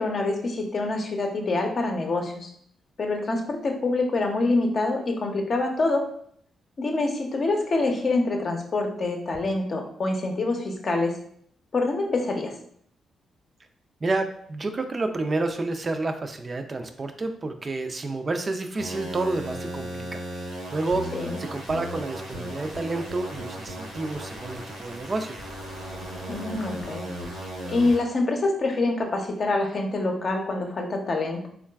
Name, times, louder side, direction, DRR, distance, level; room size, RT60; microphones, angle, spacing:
voice 1, 0.0-2.5 3.0-6.1 6.8-11.2 11.7-12.5 21.1-21.2 26.3-27.1 27.3-31.5, left 2 dB, 50° left, 2 dB, 0.6 m, -26 dB
voice 2, 14.0-25.4, right 2 dB, 40° right, 6 dB, 0.4 m, -30 dB
sound 1, 18.8-28.0, right 1 dB, 80° right, 0.8 m, -36 dB
3.7 x 2.3 x 2.2 m, 0.64 s
hypercardioid pair, 40°, 0 cm